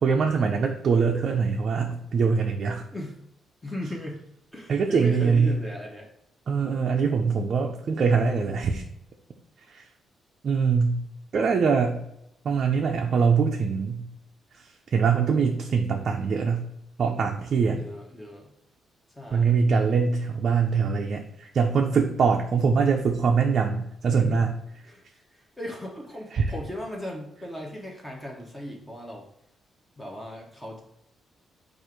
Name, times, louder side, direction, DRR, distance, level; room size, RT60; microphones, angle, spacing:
voice 1, 0.0-2.8 4.7-5.5 6.5-8.8 9.7-9.8 10.4-11.0 11.3-12.0 12.4-14.1 14.9-16.6 17.0-17.8 19.3-24.5 26.3-26.5, right 5 dB, 45° right, 1 dB, 0.4 m, -23 dB
voice 2, 3.6-4.2 4.5-6.1 17.7-18.5 19.2-19.6 24.1-24.4 24.8-25.2 25.6-29.3 30.0-30.8, equal, 10° left, -1 dB, 0.8 m, -37 dB
4.4 x 2.5 x 4.8 m, 0.77 s
cardioid pair, 150°, 0 cm